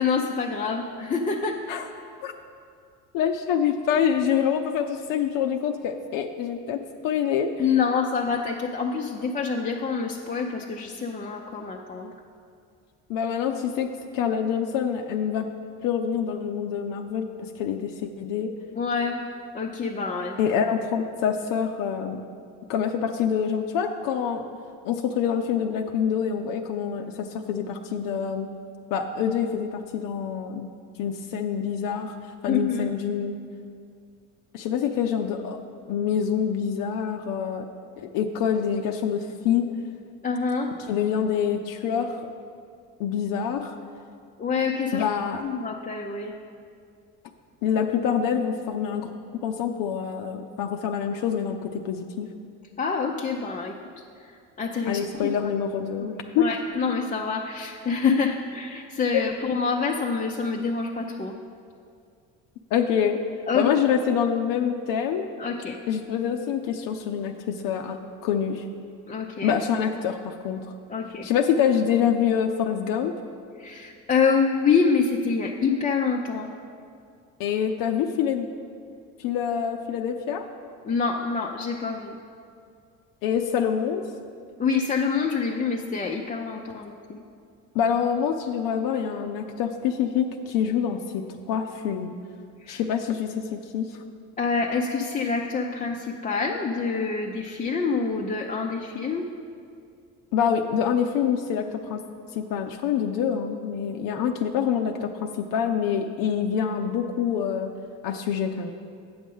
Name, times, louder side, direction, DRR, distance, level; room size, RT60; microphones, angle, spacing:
voice 1, 0.0-1.6 7.6-12.1 18.8-19.2 19.5-20.4 32.5-32.9 40.2-40.7 44.4-45.1 45.4-46.4 52.8-53.8 54.2-55.3 56.0-56.1 56.4-61.4 63.5-63.7 65.4-65.8 69.1-69.6 70.9-71.3 73.6-76.5 80.8-82.2 84.6-87.2 92.6-92.8 94.4-99.3, left 5 dB, 25° left, 0 dB, 0.5 m, -26 dB
voice 2, 3.1-7.5 13.1-15.5 15.8-18.5 20.4-22.2 22.7-24.5 24.8-28.5 28.9-30.7 31.0-32.2 32.4-33.3 34.5-35.6 35.9-37.7 38.0-39.7 40.9-42.2 43.0-43.8 44.9-45.4 47.6-49.1 49.4-52.3 54.9-56.5 62.7-63.2 63.5-65.2 65.9-68.6 69.4-70.6 71.2-73.1 77.4-78.5 79.2-80.4 83.2-84.0 87.7-92.1 92.7-93.9 100.3-102.0 102.4-107.7 108.0-108.7, left 8 dB, 70° left, 4 dB, 0.6 m, -26 dB
8.6 x 6.2 x 5.4 m, 2.3 s
supercardioid pair, 85°, 34 cm